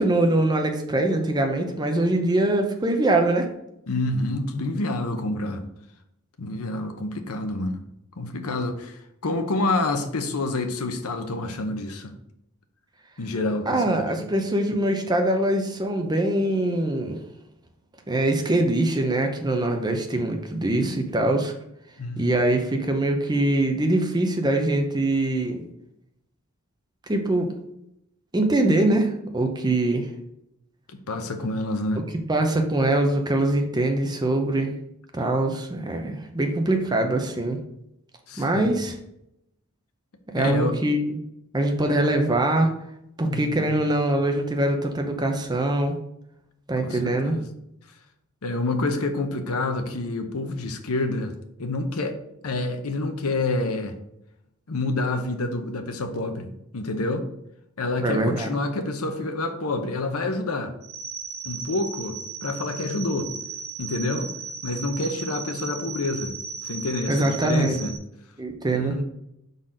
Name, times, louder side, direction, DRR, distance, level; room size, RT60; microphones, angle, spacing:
voice 1, 0.0-3.5 13.7-17.2 18.1-21.5 22.2-25.6 27.1-27.5 28.3-30.1 32.3-34.7 35.1-37.6 38.4-38.9 40.3-41.2 41.5-42.7 43.2-45.9 46.7-47.4 58.0-58.5 67.1-67.8 68.4-68.9, right 1 dB, 20° right, 3 dB, 0.7 m, -23 dB
voice 2, 3.9-5.6 6.4-7.8 8.2-12.1 13.2-13.8 14.2-14.3 20.8-20.9 22.0-22.4 30.9-32.0 38.3-38.7 40.4-40.8 43.2-43.8 46.8-47.5 48.4-51.3 51.6-52.1 52.4-54.0 54.7-57.3 57.8-60.7 61.4-63.3 63.8-64.3 64.6-66.3 66.6-67.9 68.7-69.0, left 2 dB, 80° left, 7 dB, 0.8 m, -28 dB
sound 1, 60.8-68.0, right 5 dB, 75° right, 1.0 m, -36 dB
5.8 x 4.0 x 5.0 m, 0.81 s
head